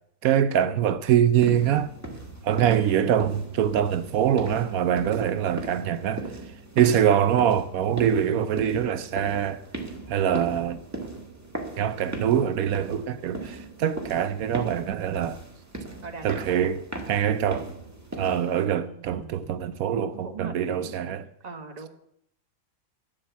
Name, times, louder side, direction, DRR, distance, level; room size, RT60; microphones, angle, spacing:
voice 1, 0.2-1.9 2.4-6.3 6.8-9.6 10.1-10.8 11.8-15.4 16.2-17.7 18.2-21.2, right 9 dB, 85° right, 1.1 m, -24 dB
sound 1, 1.4-18.7, right 2 dB, 10° right, 1.8 m, -38 dB
voice 2, 2.6-3.3 16.0-16.4 18.7-19.5 20.0-20.9 21.4-21.9, right 4 dB, 30° right, 1.6 m, -40 dB
11.5 x 7.9 x 8.2 m
omnidirectional pair, 1.5 m